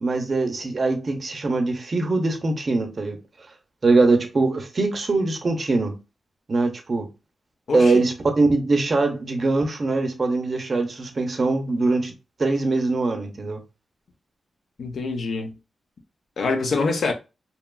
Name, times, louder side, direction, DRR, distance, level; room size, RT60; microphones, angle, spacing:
voice 1, 0.0-3.2 3.8-6.0 6.5-7.1 7.7-12.1 12.4-13.6, right 3 dB, 35° right, 0.6 m, -22 dB
voice 2, 7.7-8.0 14.8-15.6 16.4-17.1, left 3 dB, 60° left, 0.5 m, -25 dB
2.9 x 2.3 x 2.2 m
wide cardioid pair, 150°, 0 cm